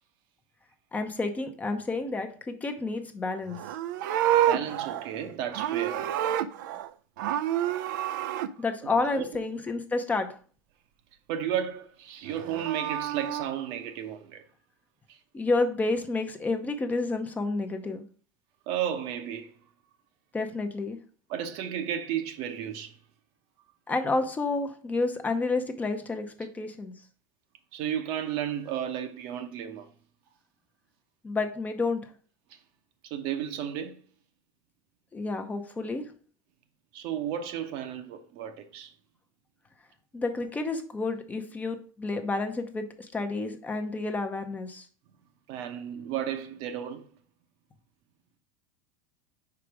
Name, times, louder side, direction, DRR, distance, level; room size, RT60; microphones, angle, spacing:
voice 1, 0.9-3.6 8.6-10.4 15.3-18.0 20.3-21.0 23.9-26.9 31.2-32.0 35.1-36.0 40.1-44.9, left 3 dB, 15° left, 0.7 m, -30 dB
Livestock farm animals working animals, 3.5-6.9 7.2-8.5 12.3-13.4, right 11 dB, 75° right, 0.5 m, -28 dB
voice 2, 4.5-6.2 9.1-9.3 11.3-14.4 15.1-15.2 18.7-19.5 21.3-23.0 27.7-29.9 32.5-32.6 33.0-34.0 36.9-38.9 45.5-47.0, right 9 dB, 55° right, 0.9 m, -33 dB
5.0 x 4.9 x 4.7 m
supercardioid pair, 125°, 10 cm